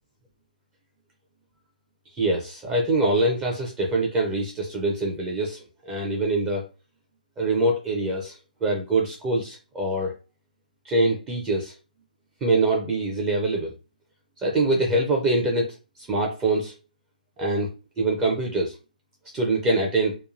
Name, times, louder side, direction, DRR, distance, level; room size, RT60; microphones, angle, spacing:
voice 1, 2.1-6.7 7.4-10.1 10.8-11.7 12.4-13.7 14.4-16.7 17.4-17.7 18.0-18.8 19.3-20.2, right 2 dB, 15° right, -1 dB, 0.4 m, -24 dB
2.8 x 2.3 x 2.5 m, 0.32 s
figure-of-eight pair, 135°, 5 cm